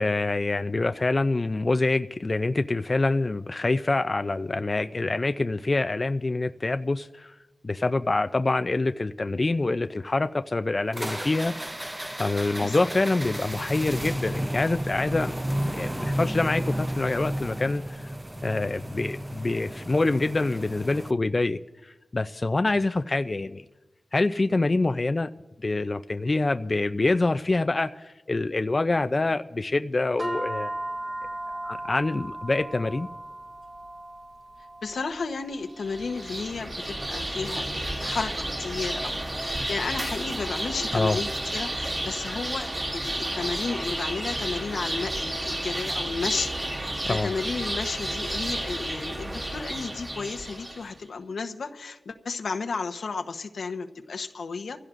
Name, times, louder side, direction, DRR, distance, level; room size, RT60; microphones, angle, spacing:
voice 1, 0.0-7.3 7.6-11.5 12.2-15.4 15.7-18.0 18.4-23.6 24.1-25.3 25.6-30.7 31.6-33.1 40.9-41.2 47.1-47.3, left 2 dB, 35° left, 9 dB, 0.4 m, -26 dB
sound 1, 10.9-21.1, right 1 dB, 15° right, 0.6 m, -33 dB
sound 2, 30.2-40.7, right 1 dB, 75° right, 3.4 m, -39 dB
voice 2, 34.8-54.8, left 4 dB, 85° left, 5 dB, 0.9 m, -33 dB
sound 3, 35.8-50.9, right 1 dB, 40° right, 3.0 m, -31 dB
25.0 x 16.0 x 2.5 m, 1.1 s
wide cardioid pair, 90°, 0 cm